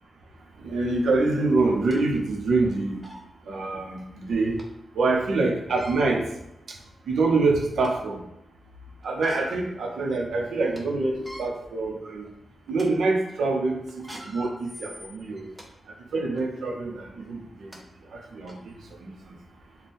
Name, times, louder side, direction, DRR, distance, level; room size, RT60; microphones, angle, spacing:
voice 1, 0.6-3.0 3.5-4.6 4.9-6.2 7.1-8.2 9.0-12.2 12.7-13.8 14.2-15.5 16.1-17.7 18.1-18.5 19.0-19.1, right 3 dB, 90° right, 1 dB, 0.7 m, -25 dB
sound 1, 0.8-0.9 1.6-2.0 2.6-2.7 3.0-3.3 4.6-4.7 5.6-6.0 6.8-6.9 7.4-8.1 9.0-9.7 10.1-10.2 10.5-10.8 11.1-11.5 12.1-12.3 12.7-12.9 13.9-15.7 16.3-16.5 17.3-17.4 17.7-17.8 18.5-18.6, equal, 10° right, 0.6 m, -44 dB
3.4 x 2.2 x 4.2 m, 0.85 s
wide cardioid pair, 130°, 0 cm